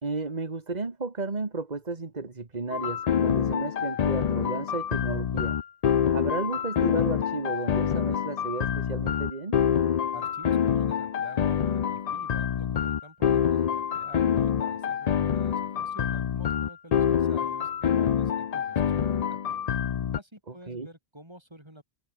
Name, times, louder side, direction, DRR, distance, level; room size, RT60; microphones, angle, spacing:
voice 1, 0.0-5.6 6.1-9.6 20.5-20.9, right 3 dB, 40° right, 1.9 m, -33 dB
sound 1, 2.7-20.2, left 8 dB, 50° left, 0.6 m, -26 dB
voice 2, 10.1-19.7 20.2-21.8, right 1 dB, 25° right, 6.6 m, -48 dB
open air
omnidirectional pair, 1.1 m